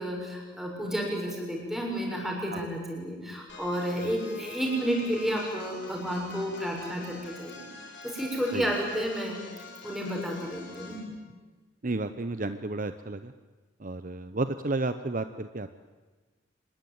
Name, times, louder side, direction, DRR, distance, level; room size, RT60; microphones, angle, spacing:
voice 1, 0.0-7.7 8.0-9.4 9.8-11.0, equal, ahead, -1 dB, 6.7 m, -31 dB
sound 1, 3.5-11.1, left 3 dB, 65° left, 7.2 m, -46 dB
voice 2, 11.8-13.3 13.8-15.8, right 2 dB, 45° right, 10 dB, 0.8 m, -32 dB
26.0 x 21.0 x 9.5 m, 1.3 s
head